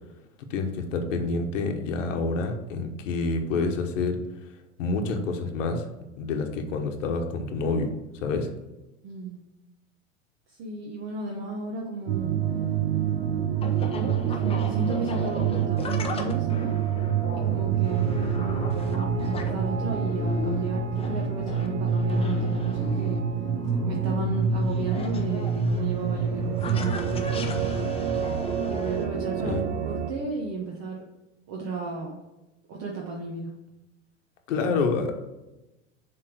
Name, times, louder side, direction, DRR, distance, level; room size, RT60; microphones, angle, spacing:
voice 1, 0.5-4.2 4.8-5.8 6.2-7.9 8.2-8.5 29.4-29.6 34.5-35.1, left 3 dB, 75° left, 4 dB, 1.2 m, -27 dB
voice 2, 9.0-9.4 10.5-12.4 14.4-16.8 17.3-23.2 23.8-27.5 28.7-29.6 29.8-31.1 31.5-32.2 32.7-33.5, right 4 dB, 40° right, 0 dB, 1.1 m, -34 dB
sound 1, 12.1-30.1, right 6 dB, 65° right, 1.0 m, -27 dB
sound 2, 12.4-29.0, left 3 dB, 15° left, 0.7 m, -39 dB
6.6 x 3.6 x 6.1 m, 1.0 s
hypercardioid pair, 115°, 38 cm